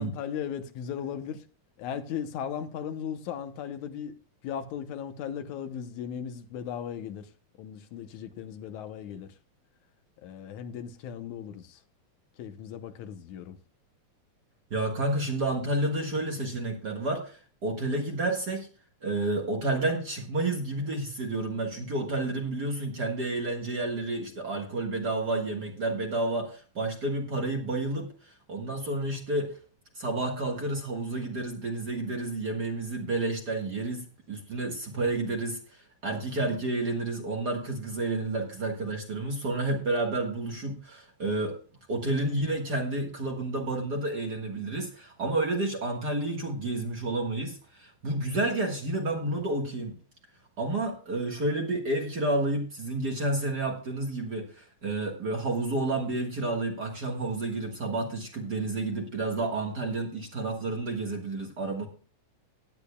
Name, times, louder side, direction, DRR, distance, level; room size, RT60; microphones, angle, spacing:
voice 1, 0.0-1.5 1.8-4.2 4.4-7.3 7.6-9.3 10.2-11.8 12.4-13.6, left 8 dB, 80° left, 2.3 m, -37 dB
voice 2, 14.7-18.7 19.0-29.6 30.0-41.6 41.9-50.0 50.6-61.9, right 2 dB, 40° right, 1.7 m, -30 dB
17.0 x 10.5 x 2.3 m
omnidirectional pair, 3.4 m